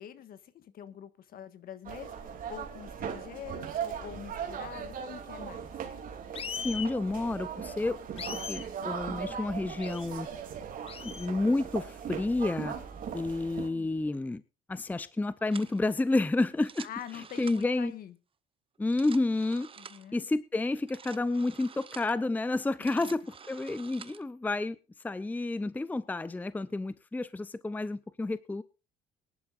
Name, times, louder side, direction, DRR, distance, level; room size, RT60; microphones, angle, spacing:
voice 1, 0.0-5.7 13.6-13.9 16.8-18.1 19.8-20.2 22.8-23.1, left 10 dB, 60° left, 1.5 m, -45 dB
sound 1, 1.8-13.7, right 7 dB, 55° right, 2.9 m, -39 dB
sound 2, 6.3-6.9 8.2-8.7 9.8-10.1 10.9-11.3, left 7 dB, 35° left, 0.9 m, -38 dB
voice 2, 6.6-10.3 11.0-12.8 13.1-14.4 14.7-16.9 17.1-17.9 18.8-19.7 20.1-24.8 25.0-28.6, left 2 dB, 10° left, 0.6 m, -30 dB
sound 3, 15.5-15.8 16.5-17.9 18.8-20.1 20.8-22.2 22.7-24.3, right 6 dB, 30° right, 0.9 m, -49 dB
22.0 x 11.0 x 2.5 m
cardioid pair, 110°, 17 cm